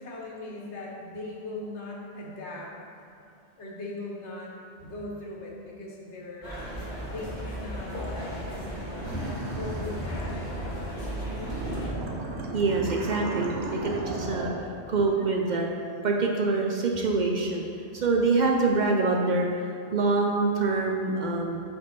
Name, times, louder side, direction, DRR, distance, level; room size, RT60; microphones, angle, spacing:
voice 1, 0.0-2.7 3.6-4.5 4.8-6.5 7.0-7.9 9.5-11.8, left 2 dB, 90° left, -2 dB, 1.4 m, -39 dB
sound 1, 6.4-11.9, equal, 45° left, 1.7 m, -35 dB
sound 2, 9.0-11.0 11.4-14.5, right 1 dB, 85° right, 1.2 m, -34 dB
voice 2, 12.5-14.5 14.9-15.7 16.0-17.7 17.9-19.6 19.9-21.6, right 3 dB, 55° right, 0 dB, 0.6 m, -25 dB
6.6 x 3.6 x 5.7 m, 2.4 s
omnidirectional pair, 1.1 m